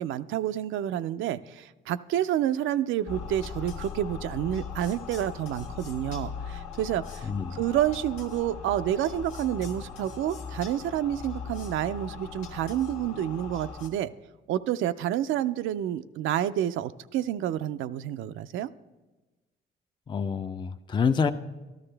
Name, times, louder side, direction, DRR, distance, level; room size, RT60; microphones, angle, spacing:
voice 1, 0.0-14.1 14.5-18.7, right 11 dB, 80° right, 12 dB, 0.4 m, -29 dB
sound 1, 3.1-13.9, left 6 dB, 85° left, 1.5 m, -39 dB
voice 2, 7.2-7.6 20.1-21.3, left 6 dB, 25° left, 9 dB, 0.4 m, -27 dB
13.0 x 12.0 x 3.3 m, 1.1 s
cardioid pair, 90°, 20 cm